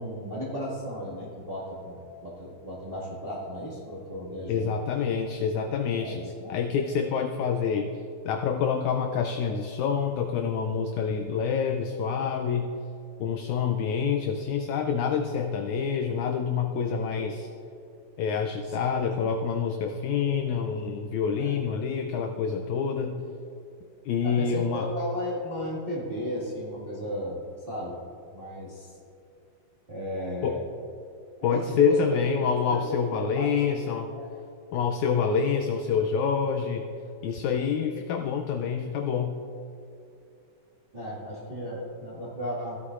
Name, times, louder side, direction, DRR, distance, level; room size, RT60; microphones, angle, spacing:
voice 1, 0.0-4.7 6.0-6.5 18.6-18.8 19.2-19.4 21.4-21.6 24.2-27.4 27.7-28.0 28.3-28.9 29.9-30.7 31.4-32.2 32.7-33.6 34.1-34.3 40.9-42.8, equal, 30° right, -8 dB, 1.1 m, -35 dB
voice 2, 4.5-6.2 6.5-7.9 8.2-12.7 13.2-17.5 18.2-23.2 24.0-24.9 30.4-30.6 31.4-34.1 34.7-36.8 37.2-39.4, left 6 dB, 85° left, 6 dB, 1.7 m, -27 dB
16.0 x 9.6 x 2.4 m, 2.6 s
omnidirectional pair, 3.9 m